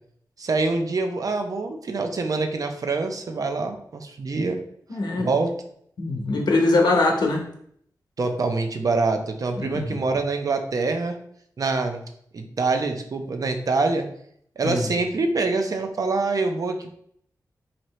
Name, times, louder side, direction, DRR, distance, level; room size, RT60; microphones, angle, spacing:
voice 1, 0.4-4.6 5.2-5.5 8.2-11.2 11.6-12.0 12.3-14.1 14.6-17.0, right 3 dB, 55° right, 5 dB, 0.5 m, -25 dB
voice 2, 4.9-5.3 6.0-7.4 9.6-10.0 14.6-14.8, left 2 dB, 75° left, 2 dB, 0.8 m, -22 dB
4.2 x 2.8 x 3.1 m, 0.66 s
wide cardioid pair, 115°, 7 cm